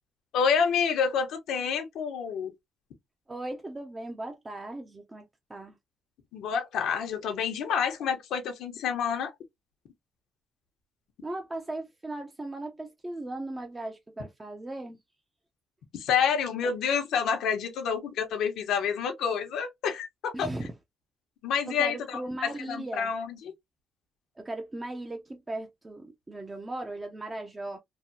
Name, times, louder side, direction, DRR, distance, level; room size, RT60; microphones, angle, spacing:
voice 1, 0.3-2.5 6.3-9.3 15.9-20.5 21.4-23.5, left 7 dB, 80° left, 0.9 m, -28 dB
voice 2, 3.3-5.8 11.2-15.0 16.6-16.7 20.3-20.7 21.7-23.2 24.4-27.8, right 2 dB, 20° right, 0.6 m, -37 dB
3.2 x 2.2 x 2.6 m
cardioid pair, 90°, 0 cm